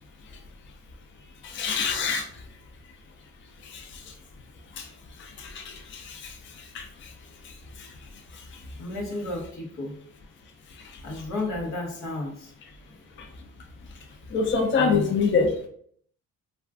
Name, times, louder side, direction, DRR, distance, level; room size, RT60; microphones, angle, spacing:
voice 1, 1.4-2.3 3.7-3.9 4.8-4.9 5.4-6.4 6.7-7.1 7.8-7.9 14.3-15.7, left 5 dB, 40° left, 3 dB, 0.5 m, -26 dB
voice 2, 8.8-9.9 11.0-12.5 14.7-15.1, left 2 dB, 85° left, 0 dB, 0.9 m, -32 dB
2.3 x 2.3 x 3.4 m, 0.62 s
cardioid pair, 90°, 30 cm